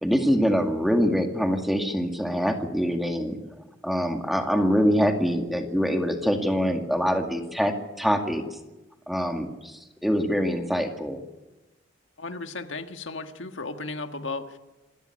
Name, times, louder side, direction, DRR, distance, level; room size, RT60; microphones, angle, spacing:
voice 1, 0.0-3.4 3.8-8.4 9.1-11.2, equal, ahead, 4 dB, 2.1 m, -24 dB
voice 2, 12.2-14.6, left 3 dB, 80° left, 6 dB, 1.6 m, -35 dB
27.0 x 13.0 x 9.7 m, 1.1 s
head